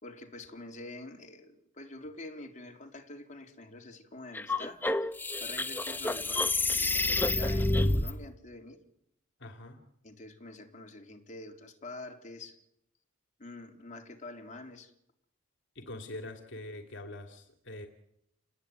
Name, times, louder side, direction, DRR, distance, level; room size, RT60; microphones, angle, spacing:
voice 1, 0.0-4.9 5.4-8.8 10.0-12.6 13.4-14.9, left 2 dB, 40° left, 3 dB, 3.8 m, -46 dB
sound 1, 4.3-8.1, left 2 dB, 10° left, 1.1 m, -28 dB
voice 2, 9.4-9.8 15.7-17.9, left 1 dB, 60° left, 5 dB, 2.8 m, -43 dB
29.5 x 20.5 x 9.5 m, 0.77 s
head